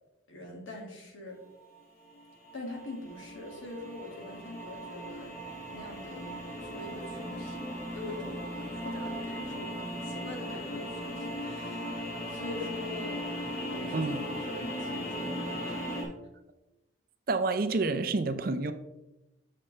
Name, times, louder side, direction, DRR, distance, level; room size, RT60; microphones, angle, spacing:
voice 1, 0.3-1.4 2.5-5.3 5.7-7.6 7.9-12.0 12.3-13.2 13.7-15.8, left 2 dB, 85° left, 0 dB, 2.0 m, -43 dB
sound 1, 1.6-16.0, equal, 50° left, 2.0 m, -38 dB
voice 2, 17.3-18.7, right 3 dB, 50° right, 9 dB, 0.5 m, -28 dB
7.5 x 6.4 x 3.2 m, 0.97 s
head